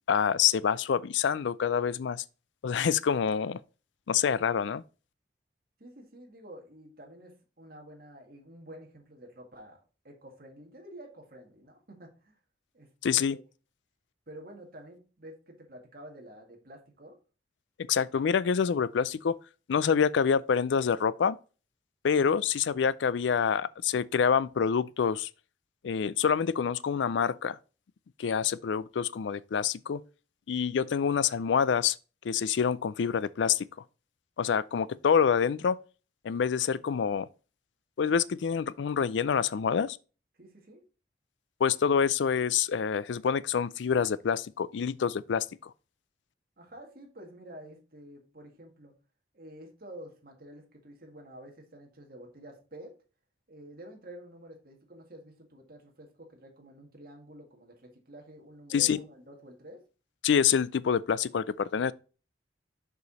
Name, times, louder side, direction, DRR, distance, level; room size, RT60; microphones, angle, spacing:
voice 1, 0.1-2.2 2.6-3.6 4.1-4.8 13.0-13.4 17.9-19.4 19.7-21.4 22.0-25.3 25.8-27.6 28.2-30.0 30.5-32.0 32.2-33.7 34.4-35.8 36.2-37.3 38.0-40.0 41.6-45.7 58.7-59.0 60.2-61.9, left 7 dB, 75° left, 0.4 m, -26 dB
voice 2, 5.8-12.4 12.7-13.4 14.3-17.2 40.4-40.8 46.6-48.9 49.3-52.9 53.5-59.8, right 1 dB, 50° right, 2.0 m, -49 dB
6.8 x 4.9 x 4.0 m
head